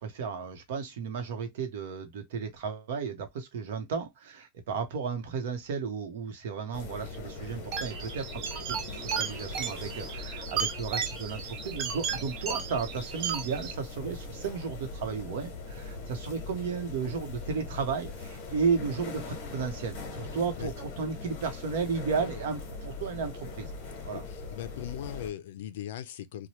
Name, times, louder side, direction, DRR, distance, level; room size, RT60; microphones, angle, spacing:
voice 1, 0.0-23.7 24.1-24.2, right 5 dB, 65° right, 0.9 m, -34 dB
sound 1, 6.7-25.3, left 3 dB, 40° left, 1.1 m, -41 dB
sound 2, 7.7-13.7, right 7 dB, 35° right, 0.5 m, -35 dB
voice 2, 20.3-20.7 24.1-26.5, left 11 dB, 70° left, 0.4 m, -39 dB
2.9 x 2.2 x 3.0 m
supercardioid pair, 175°, 0 cm